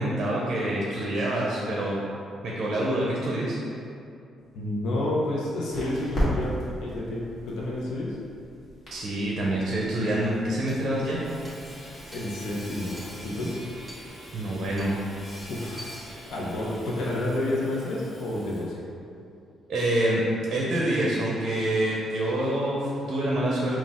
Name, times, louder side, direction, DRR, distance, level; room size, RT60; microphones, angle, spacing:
voice 1, 0.0-2.0 2.4-3.6 8.9-11.2 14.3-15.0 19.7-20.2 20.5-23.8, right 1 dB, 55° right, -4 dB, 0.6 m, -26 dB
sound 1, 4.4-16.8, equal, 40° left, 1.5 m, -38 dB
voice 2, 4.5-6.5 6.8-8.1 12.1-13.5 15.5-15.9 16.3-18.8, left 1 dB, 75° left, -4 dB, 0.7 m, -29 dB
Hammer / Sawing, 10.7-18.8, equal, 10° right, 1.3 m, -44 dB
4.0 x 2.4 x 3.5 m, 2.5 s
cardioid pair, 90°, 0 cm